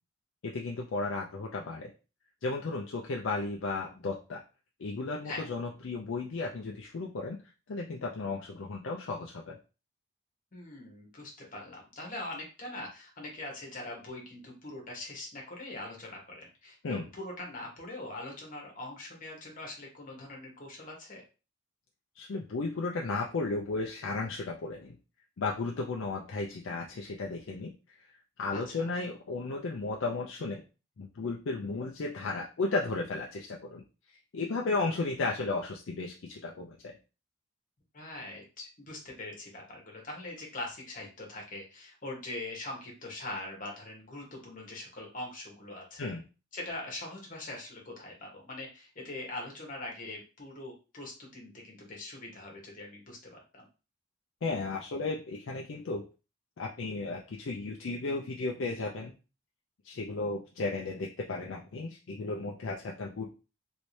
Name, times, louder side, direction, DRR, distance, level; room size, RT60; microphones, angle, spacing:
voice 1, 0.4-1.9 2.4-4.4 4.8-7.4 7.7-9.6 16.8-17.1 22.2-25.0 25.4-30.6 31.0-36.9 46.0-46.2 54.4-56.0 56.6-59.1 59.8-63.3, left 3 dB, 60° left, -1 dB, 0.4 m, -34 dB
voice 2, 10.5-21.2 28.5-28.9 37.9-46.1 46.5-53.7, left 2 dB, 40° left, -1 dB, 1.1 m, -42 dB
3.1 x 2.7 x 3.1 m, 0.32 s
head